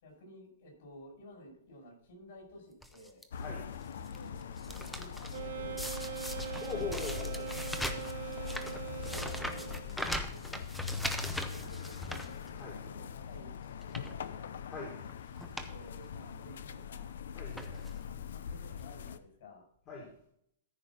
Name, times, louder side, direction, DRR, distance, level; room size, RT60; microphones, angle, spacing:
voice 1, 0.0-3.2 4.1-6.9 8.4-10.7 11.2-12.4 12.8-13.5 13.8-14.6 15.5-17.2 18.0-19.6, left 1 dB, 50° left, 1 dB, 5.0 m, -53 dB
sound 1, 2.8-3.2 3.8-4.2 4.4-5.4 5.8-12.9 13.3-13.4 13.8-14.2 15.0-15.1 15.4-15.7 16.0-16.1 17.0-17.2 17.5-18.0 18.8-18.9 19.1-19.2, equal, ahead, 0.6 m, -40 dB
sound 2, 3.3-19.2, left 7 dB, 75° left, 0.7 m, -42 dB
Wind instrument woodwind instrument, 5.3-10.0, right 12 dB, 55° right, 0.8 m, -42 dB
voice 2, 6.6-7.6 12.6-12.8 14.7-15.3 17.3-17.9 19.9-20.1, left 4 dB, 20° left, -3 dB, 1.9 m, -42 dB
14.0 x 4.9 x 5.7 m, 0.68 s
supercardioid pair, 180°, 0 cm